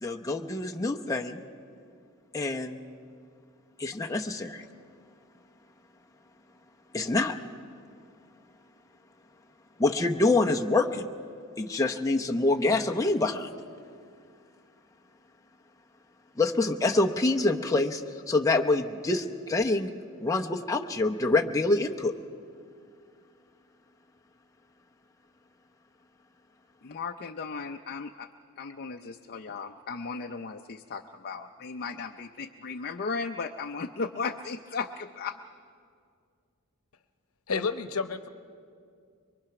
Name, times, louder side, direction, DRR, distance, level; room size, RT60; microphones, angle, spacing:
voice 1, 0.0-1.4 2.3-2.8 3.8-4.6 6.9-7.3 9.8-11.1 11.6-13.5 16.4-18.0 18.3-19.9 20.2-22.1, left 2 dB, 15° left, 2 dB, 0.8 m, -26 dB
voice 2, 26.8-28.3 28.6-35.4, left 4 dB, 45° left, 5 dB, 0.5 m, -36 dB
voice 3, 37.5-38.3, left 4 dB, 80° left, 10 dB, 0.9 m, -30 dB
23.5 x 23.0 x 5.9 m, 2.3 s
head